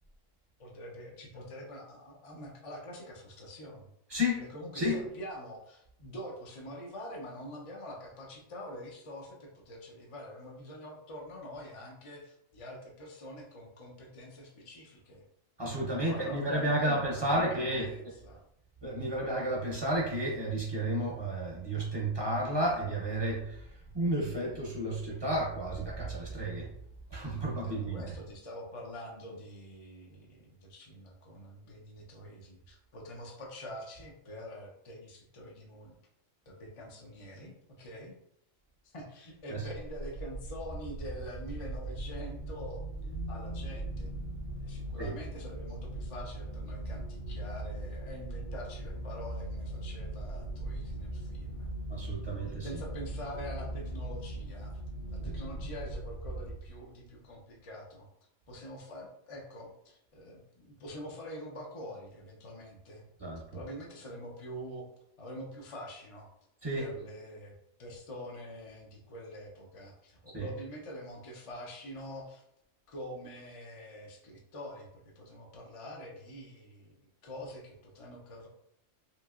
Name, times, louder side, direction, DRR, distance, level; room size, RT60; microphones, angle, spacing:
voice 1, 0.6-3.9 4.3-15.2 15.9-18.4 27.6-36.0 36.5-38.2 38.8-44.1 44.6-51.7 52.6-54.8 55.1-58.1 58.5-63.0 63.5-64.9 65.2-66.3 66.8-72.4 72.9-78.5, equal, 45° left, -2 dB, 0.4 m, -45 dB
voice 2, 4.1-4.5 4.7-5.0 15.6-17.9 18.8-26.7 27.1-28.0 39.5-39.7 45.0-45.2 51.9-52.8 55.2-55.3 63.2-63.5 66.6-66.9 70.3-70.5, right 1 dB, 30° right, -4 dB, 0.5 m, -32 dB
sound 1, 39.8-57.0, right 1 dB, 70° left, 1.2 m, -39 dB
2.9 x 2.8 x 2.3 m, 0.76 s
omnidirectional pair, 1.3 m